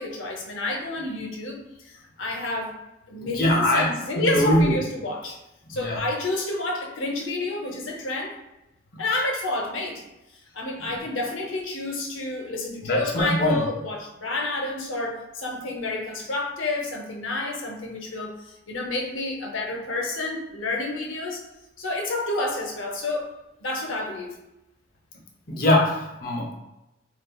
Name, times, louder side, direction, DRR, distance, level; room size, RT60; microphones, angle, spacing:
voice 1, 0.0-1.6 1.8-2.8 3.1-5.4 5.7-8.3 9.0-10.0 10.5-21.4 21.8-23.3 23.6-24.4, left 2 dB, 85° left, 1 dB, 0.7 m, -29 dB
voice 2, 3.2-3.9 4.2-4.8 5.7-6.0 10.8-10.9 12.8-13.6 25.5-26.5, left 1 dB, 50° left, 0 dB, 0.7 m, -22 dB
4.2 x 2.3 x 2.3 m, 0.93 s
head